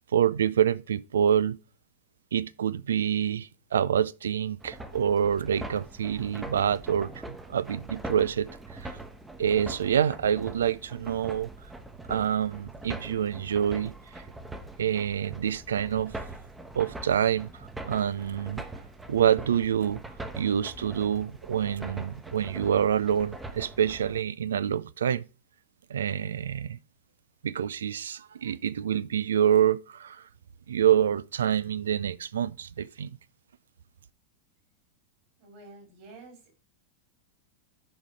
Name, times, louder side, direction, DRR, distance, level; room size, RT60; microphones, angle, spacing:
voice 1, 0.1-1.6 2.3-9.0 9.4-11.5 12.1-13.9 14.8-16.2 16.7-18.6 19.1-20.0 20.3-25.2 25.9-26.8 27.4-30.3 30.7-33.1, right 9 dB, 65° right, 0.4 m, -27 dB
sound 1, 4.6-24.2, right 2 dB, 10° right, 1.1 m, -42 dB
voice 2, 35.4-36.5, right 3 dB, 45° right, 4.7 m, -49 dB
10.5 x 5.3 x 4.9 m
figure-of-eight pair, 90°, 0 cm